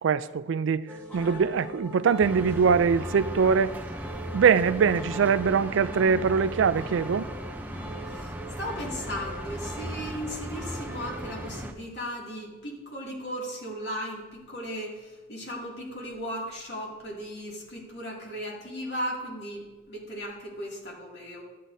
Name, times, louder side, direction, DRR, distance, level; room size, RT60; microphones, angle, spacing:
voice 1, 0.0-0.9 1.1-3.8 4.3-7.3, right 6 dB, 80° right, 0.4 m, -23 dB
sound 1, 0.9-11.4, right 1 dB, 10° left, 1.1 m, -42 dB
sound 2, 2.2-11.7, right 1 dB, 10° right, 0.5 m, -37 dB
voice 2, 8.1-21.4, equal, 60° left, 2.4 m, -36 dB
14.5 x 7.5 x 2.7 m
head